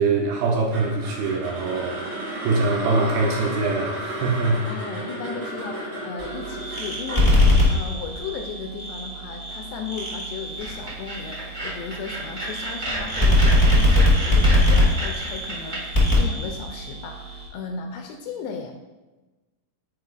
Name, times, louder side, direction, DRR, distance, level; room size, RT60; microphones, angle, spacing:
voice 1, 0.0-2.0 2.4-4.7, right 3 dB, 80° right, 0 dB, 2.4 m, -23 dB
sound 1, 0.7-8.9, right 1 dB, 55° right, 3.6 m, -33 dB
voice 2, 4.7-18.7, left 5 dB, 80° left, 4 dB, 2.3 m, -36 dB
sound 2, 6.2-17.5, left 1 dB, 20° left, 0.8 m, -22 dB
sound 3, 10.6-15.8, right 2 dB, 35° right, 1.2 m, -32 dB
9.3 x 5.0 x 2.4 m, 1.2 s
omnidirectional pair, 4.7 m